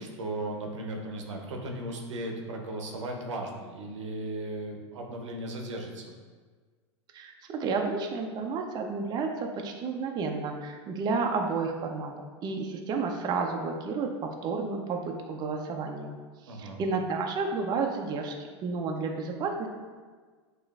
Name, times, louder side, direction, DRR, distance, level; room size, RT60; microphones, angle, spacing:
voice 1, 0.0-6.1 16.5-16.8, right 1 dB, 85° right, 2 dB, 0.6 m, -36 dB
voice 2, 7.1-12.1 12.4-16.1 16.4-18.3 18.6-19.7, right 4 dB, 30° right, 2 dB, 0.4 m, -31 dB
6.1 x 2.4 x 2.3 m, 1.5 s
hypercardioid pair, 105°, 15 cm